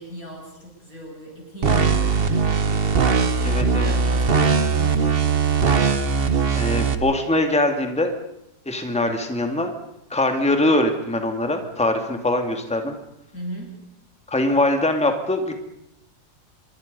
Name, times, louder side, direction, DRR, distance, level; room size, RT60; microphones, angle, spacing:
voice 1, 0.0-3.1 3.5-5.4 13.3-13.8, equal, 50° left, 0 dB, 8.0 m, -37 dB
sound 1, 1.6-7.0, right 5 dB, 35° right, 1.2 m, -20 dB
voice 2, 3.4-3.9 5.9-6.0 6.5-8.1 8.7-9.7 10.1-12.9 14.3-15.5, left 1 dB, 5° left, 5 dB, 2.2 m, -22 dB
26.0 x 23.5 x 5.4 m, 0.83 s
omnidirectional pair, 2.0 m